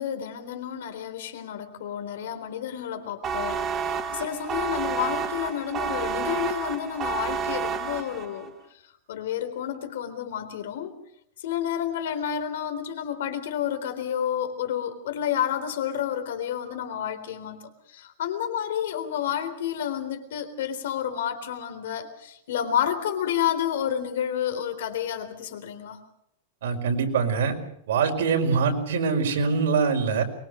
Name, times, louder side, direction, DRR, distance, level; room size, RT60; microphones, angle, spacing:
voice 1, 0.0-8.5 9.1-11.0 11.4-26.0, left 9 dB, 75° left, 9 dB, 3.9 m, -30 dB
sound 1, 3.2-8.5, right 6 dB, 20° right, 1.1 m, -30 dB
voice 2, 26.6-27.6 27.9-30.2, right 5 dB, 80° right, 3 dB, 5.0 m, -23 dB
23.5 x 22.5 x 6.5 m, 0.73 s
supercardioid pair, 170°, 0 cm